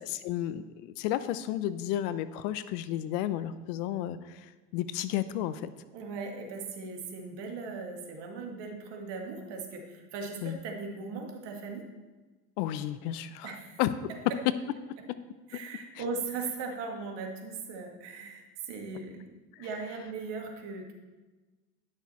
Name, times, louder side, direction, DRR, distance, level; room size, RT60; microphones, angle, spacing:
voice 1, 0.0-4.4 4.7-5.7 10.4-10.6 12.6-13.5 13.8-14.1, left 12 dB, 75° left, 14 dB, 0.7 m, -32 dB
voice 2, 5.9-11.9 13.4-13.8 15.5-20.9, right 4 dB, 60° right, 2 dB, 1.9 m, -38 dB
10.5 x 6.4 x 4.3 m, 1.2 s
supercardioid pair, 90°, 46 cm